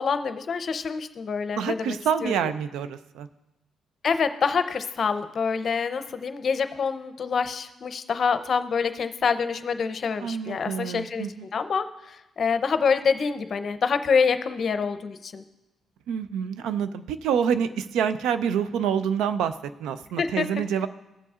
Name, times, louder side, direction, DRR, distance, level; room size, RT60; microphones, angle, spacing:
voice 1, 0.0-2.5 4.0-11.3 11.5-15.4 20.2-20.5, left 5 dB, 50° left, 11 dB, 0.6 m, -26 dB
voice 2, 1.6-3.3 10.2-11.5 16.1-20.9, right 8 dB, 85° right, 12 dB, 0.4 m, -27 dB
16.5 x 6.9 x 2.4 m, 0.97 s
cardioid pair, 90°, 0 cm